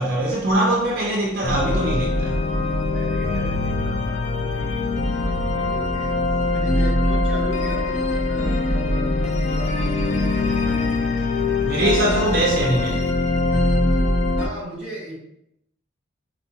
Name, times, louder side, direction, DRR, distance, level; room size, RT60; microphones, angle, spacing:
voice 1, 0.0-2.6 11.6-13.1, right 1 dB, 45° right, 0.5 m, -22 dB
sound 1, 1.4-14.5, left 2 dB, 35° left, 0.3 m, -22 dB
voice 2, 2.9-6.2 6.5-10.9 14.4-15.2, equal, 5° right, 1.4 m, -37 dB
4.3 x 2.0 x 2.7 m
head